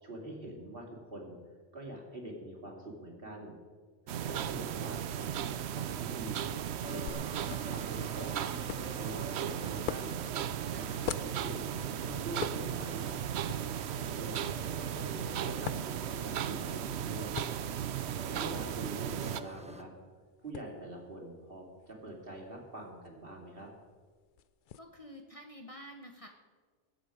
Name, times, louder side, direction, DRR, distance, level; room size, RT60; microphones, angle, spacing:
voice 1, 0.0-1.3 1.7-3.6 4.2-6.5 6.8-7.2 7.7-10.2 10.7-11.8 12.0-13.2 13.9-17.4 18.3-19.9 20.4-23.7, right 1 dB, 50° right, 0 dB, 2.9 m, -45 dB
sound 1, 4.1-19.4, right 9 dB, 70° right, 0.8 m, -36 dB
sound 2, 6.8-19.8, right 1 dB, 10° right, 0.5 m, -50 dB
sound 3, 7.1-24.8, left 9 dB, 60° left, 0.6 m, -47 dB
voice 2, 24.8-26.3, equal, 30° left, 2 dB, 1.1 m, -49 dB
22.0 x 7.9 x 4.9 m, 1.5 s
omnidirectional pair, 1.2 m